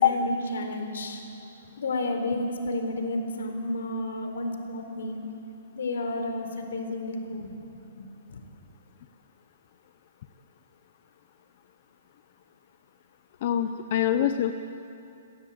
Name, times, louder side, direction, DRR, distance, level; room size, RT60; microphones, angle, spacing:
voice 1, 0.0-1.2 1.8-5.2 5.7-8.4, left 2 dB, 75° left, 5 dB, 4.2 m, -31 dB
voice 2, 13.4-14.5, left 10 dB, 35° left, 8 dB, 0.7 m, -23 dB
27.5 x 16.5 x 8.7 m, 2.8 s
hypercardioid pair, 175°, 0 cm